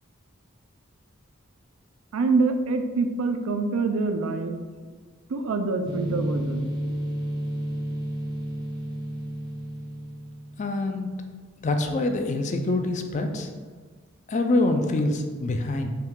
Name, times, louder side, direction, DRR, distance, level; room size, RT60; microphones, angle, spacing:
voice 1, 2.1-4.6 5.3-6.7, right 3 dB, 90° right, 7 dB, 0.4 m, -25 dB
sound 1, 5.9-10.7, right 1 dB, 20° right, 0.6 m, -32 dB
voice 2, 10.6-11.1 11.6-13.5 14.3-15.9, left 2 dB, 35° left, 5 dB, 0.4 m, -25 dB
5.6 x 2.3 x 3.6 m, 1.5 s
head